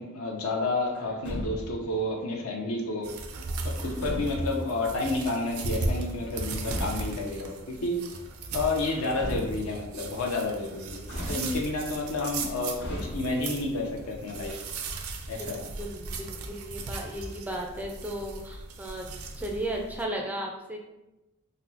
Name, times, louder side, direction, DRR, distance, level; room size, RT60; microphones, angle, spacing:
voice 1, 0.0-3.1 3.6-8.2 8.5-14.6 15.3-15.7, left 2 dB, 70° left, 1 dB, 0.6 m, -30 dB
Truck, 0.9-1.9 3.7-4.6 6.3-7.2 8.8-9.9 11.0-11.9 12.8-13.6, equal, 55° left, 1.1 m, -36 dB
sound 1, 3.0-20.0, right 3 dB, 75° right, 0.4 m, -37 dB
voice 2, 15.8-20.8, right 1 dB, 10° right, 0 dB, 0.3 m, -35 dB
4.0 x 2.0 x 2.7 m, 0.96 s
head